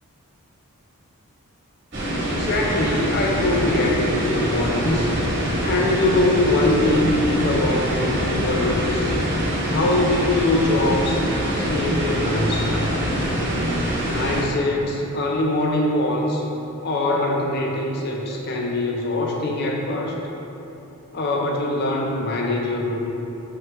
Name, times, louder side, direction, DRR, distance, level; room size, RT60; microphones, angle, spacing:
sound 1, 1.9-14.4, equal, 50° right, 1.2 m, -24 dB
voice 1, 2.3-5.2 5.6-9.1 9.7-11.2 11.5-13.0 14.1-16.4 16.8-20.2 21.1-23.1, left 2 dB, 45° left, 0 dB, 0.5 m, -23 dB
4.8 x 3.2 x 3.0 m, 3.0 s
head